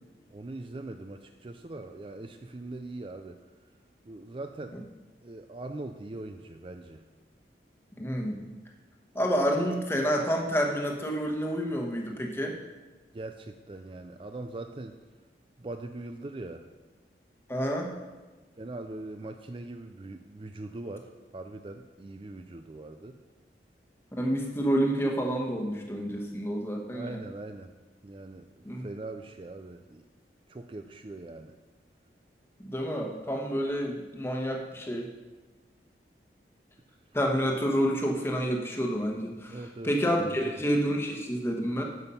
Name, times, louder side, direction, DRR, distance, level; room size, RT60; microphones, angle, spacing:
voice 1, 0.3-3.4 4.1-4.8 5.2-7.0 13.1-15.0 15.6-16.7 18.6-23.2 26.9-27.7 28.0-28.4 28.8-30.0 30.5-31.5 39.5-39.9 40.2-40.5, right 2 dB, 30° right, 7 dB, 0.4 m, -41 dB
voice 2, 8.0-8.4 9.1-12.6 17.5-18.0 24.1-27.2 28.6-28.8 32.6-35.1 37.1-41.8, equal, 15° left, 1 dB, 1.2 m, -29 dB
9.6 x 7.1 x 5.6 m, 1.3 s
head